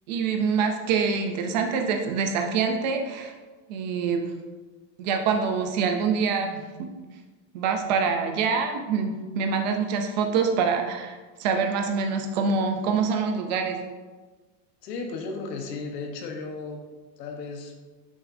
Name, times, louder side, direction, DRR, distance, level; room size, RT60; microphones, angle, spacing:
voice 1, 0.1-3.3 3.7-4.3 5.0-6.9 7.5-13.8, right 5 dB, 30° right, 4 dB, 0.4 m, -25 dB
voice 2, 14.8-16.8 17.2-17.7, left 4 dB, 80° left, 2 dB, 1.2 m, -34 dB
8.2 x 6.1 x 2.6 m, 1.3 s
supercardioid pair, 170°, 49 cm